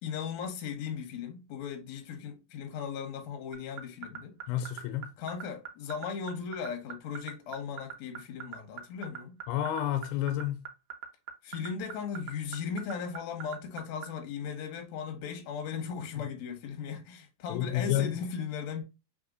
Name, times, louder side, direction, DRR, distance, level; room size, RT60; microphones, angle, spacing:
voice 1, 0.0-4.4 5.2-9.4 11.4-18.8, left 6 dB, 70° left, 1.7 m, -37 dB
sound 1, 3.5-14.1, right 8 dB, 85° right, 3.0 m, -40 dB
voice 2, 4.5-5.1 9.5-10.7 16.2-16.3 17.5-18.2, left 11 dB, 85° left, 2.5 m, -30 dB
6.0 x 3.2 x 2.6 m
omnidirectional pair, 4.6 m